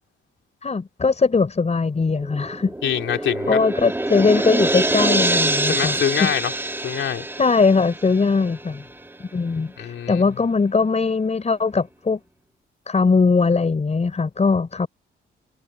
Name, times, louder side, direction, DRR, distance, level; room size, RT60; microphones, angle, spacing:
voice 1, 0.6-2.7 3.5-6.3 7.4-8.8 9.2-12.2 12.9-14.9, left 4 dB, 30° left, 5.1 m, -20 dB
sound 1, 2.2-9.1 9.5-9.6, right 2 dB, 10° right, 2.7 m, -25 dB
voice 2, 2.8-3.6 5.7-6.5 6.8-7.3 9.8-10.2, left 9 dB, 65° left, 3.2 m, -25 dB
cardioid pair, 90°, 21 cm